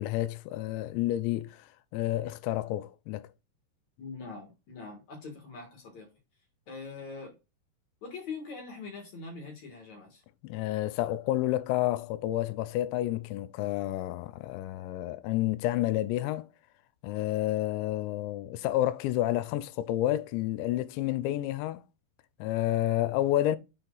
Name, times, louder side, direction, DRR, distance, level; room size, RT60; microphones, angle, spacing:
voice 1, 0.0-1.7 1.9-3.3 10.4-16.5 17.0-21.8 22.4-23.6, left 14 dB, 85° left, 2.8 m, -30 dB
voice 2, 4.0-6.1 6.7-7.3 8.0-10.2, left 4 dB, 55° left, 2.2 m, -42 dB
7.0 x 4.4 x 3.8 m
omnidirectional pair, 5.3 m